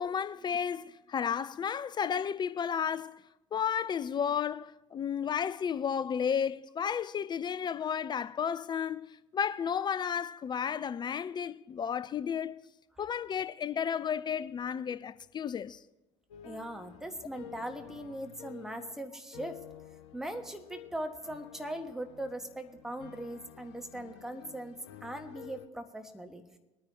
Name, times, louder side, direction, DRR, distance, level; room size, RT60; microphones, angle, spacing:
voice 1, 0.0-3.2 3.5-12.6 13.0-15.8, left 7 dB, 30° left, 0.4 m, -33 dB
sound 1, 16.3-25.7, left 10 dB, 70° left, 0.8 m, -51 dB
voice 2, 16.4-19.6 20.1-24.8 25.0-26.4, right 1 dB, 5° right, 1.4 m, -40 dB
21.5 x 9.6 x 2.8 m
figure-of-eight pair, 55°, 16 cm